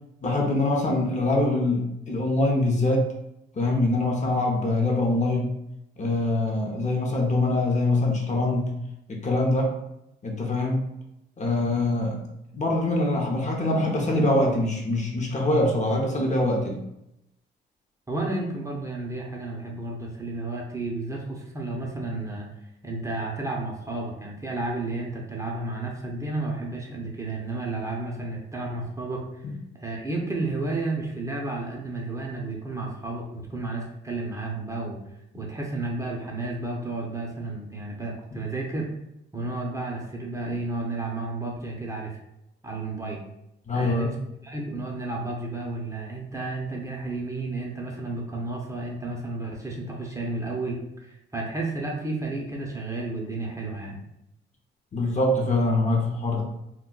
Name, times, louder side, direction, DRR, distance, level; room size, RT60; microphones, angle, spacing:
voice 1, 0.2-3.1 3.5-5.6 6.0-8.7 9.1-9.7 10.2-10.8 11.4-12.2 12.5-16.8 29.4-29.5 43.7-44.1 54.9-56.4, left 2 dB, 35° left, 0 dB, 0.7 m, -24 dB
voice 2, 18.1-22.5 22.8-29.4 29.7-35.0 35.3-38.9 39.3-42.2 42.6-43.2 43.7-44.2 44.4-54.0, right 2 dB, 15° right, -2 dB, 0.6 m, -32 dB
2.2 x 2.2 x 3.8 m, 0.84 s
cardioid pair, 90°, 20 cm